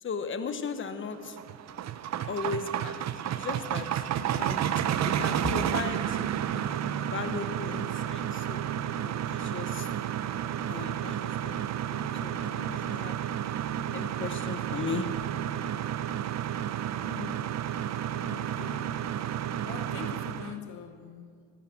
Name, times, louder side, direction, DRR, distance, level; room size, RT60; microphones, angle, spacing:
voice 1, 0.0-1.4 2.2-3.0 3.3-3.9 4.4-4.7 5.0-6.2 7.1-8.7 9.0-9.9 10.6-13.2 13.9-15.2, left 5 dB, 40° left, 1.3 m, -36 dB
sound 1, 1.2-20.6, right 10 dB, 60° right, 0.7 m, -31 dB
voice 2, 17.0-17.5 18.0-19.0 19.6-21.5, left 8 dB, 75° left, 1.1 m, -43 dB
17.5 x 11.5 x 6.1 m
cardioid pair, 90°, 30 cm